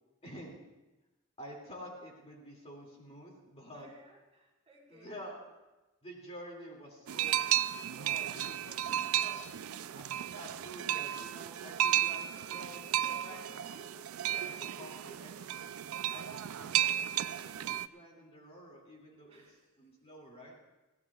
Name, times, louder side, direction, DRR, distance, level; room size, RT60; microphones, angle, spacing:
voice 1, 0.2-0.7 1.4-3.9 4.9-5.4 6.0-7.5 7.9-9.4 10.3-12.8 13.2-13.6 14.3-15.6 16.1-19.4 19.8-20.5, equal, 30° left, -2 dB, 2.4 m, -49 dB
voice 2, 3.7-5.2 9.6-10.2 12.7-14.0 19.3-20.1, right 1 dB, 30° right, -5 dB, 4.4 m, -58 dB
sound 1, 7.1-17.9, right 11 dB, 85° right, 0.4 m, -34 dB
21.5 x 16.0 x 2.4 m, 1.1 s
head